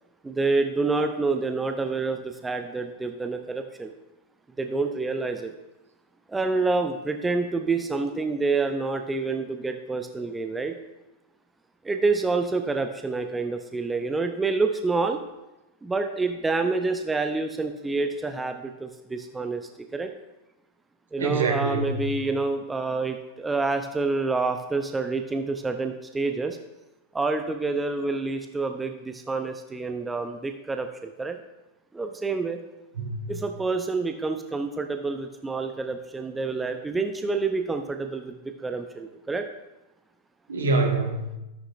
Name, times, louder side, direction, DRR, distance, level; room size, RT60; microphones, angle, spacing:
voice 1, 0.2-3.9 4.6-5.5 6.3-10.7 11.8-15.2 15.8-20.1 21.1-26.6 27.1-31.4 31.9-32.6 33.3-38.3 38.6-39.5, right 3 dB, 10° right, 6 dB, 0.6 m, -28 dB
voice 2, 21.2-22.1 33.0-33.3 40.5-41.3, right 3 dB, 70° right, 3 dB, 1.7 m, -25 dB
12.5 x 11.0 x 2.6 m, 0.98 s
figure-of-eight pair, 90°, 0 cm